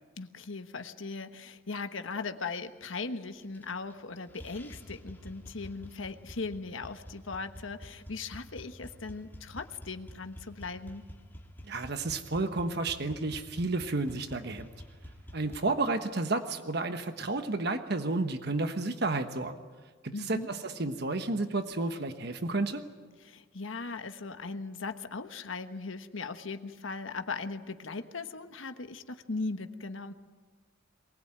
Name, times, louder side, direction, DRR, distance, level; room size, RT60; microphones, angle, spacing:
voice 1, 0.2-11.0 20.1-20.5 23.2-30.1, left 4 dB, 90° left, 8 dB, 1.3 m, -38 dB
sound 1, 3.4-4.0 4.3-15.6, equal, 10° left, 3.1 m, -49 dB
voice 2, 11.6-14.7 15.3-19.6 20.0-22.8, right 3 dB, 55° right, 8 dB, 1.2 m, -31 dB
23.0 x 20.0 x 8.9 m, 1.4 s
head